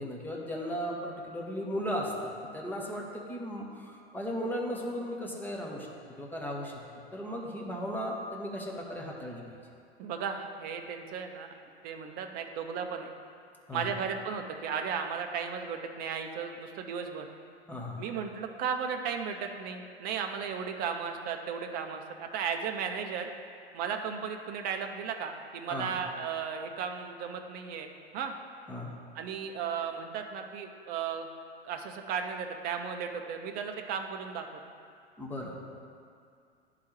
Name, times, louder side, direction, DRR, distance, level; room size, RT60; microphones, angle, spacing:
voice 1, 0.0-2.1 2.5-5.9 6.2-6.8 7.1-9.4 13.7-13.8 17.7-18.0 25.7-26.0 28.7-28.9 35.2-35.6, equal, 5° left, -2 dB, 0.8 m, -36 dB
voice 2, 10.0-11.5 11.8-13.1 13.7-17.3 18.0-23.3 23.7-28.3 29.1-31.3 31.6-34.5, right 6 dB, 30° right, 5 dB, 0.5 m, -35 dB
11.0 x 3.8 x 3.2 m, 2.3 s
figure-of-eight pair, 90°, 32 cm